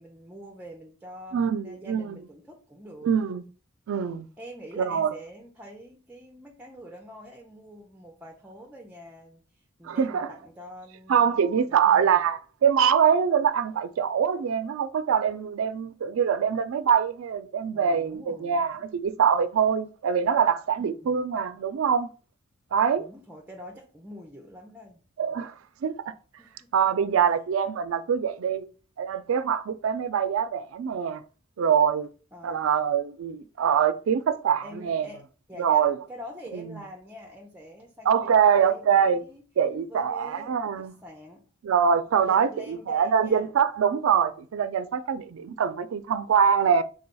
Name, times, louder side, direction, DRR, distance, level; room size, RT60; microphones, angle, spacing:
voice 1, 0.0-3.1 4.4-11.4 11.7-12.3 17.7-18.8 20.8-21.3 23.0-25.0 26.4-26.7 27.2-27.3 32.3-32.9 34.6-35.2 35.5-39.4 39.9-41.4 42.1-43.5, equal, 10° right, 0.5 m, -45 dB
voice 2, 1.3-2.2 3.0-3.4 3.9-4.3 4.8-5.1 9.8-10.3 11.1-22.1 22.7-23.1 25.2-25.5 25.8-26.0 26.7-28.7 29.0-31.2 31.6-32.1 32.4-35.1 35.6-36.0 36.5-36.6 38.1-39.2 39.6-40.9 41.6-46.8, right 7 dB, 90° right, 0.4 m, -24 dB
3.6 x 2.3 x 4.0 m
head